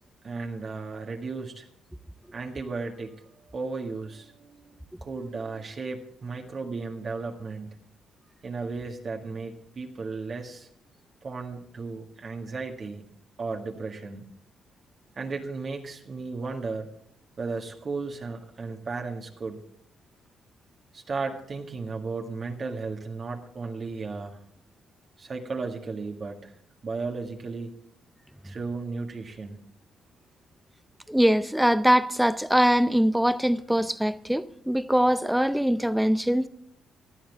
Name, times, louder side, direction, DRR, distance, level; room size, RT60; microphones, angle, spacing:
voice 1, 0.2-1.7 2.3-4.7 5.0-7.7 8.4-10.7 11.2-13.1 13.4-14.2 15.2-16.9 17.4-19.6 20.9-24.4 25.2-26.5 26.8-27.7 28.4-29.6, right 4 dB, 45° right, 1.8 m, -35 dB
voice 2, 31.1-36.5, equal, 5° right, 0.7 m, -22 dB
19.0 x 11.5 x 3.5 m
cardioid pair, 90°, 0 cm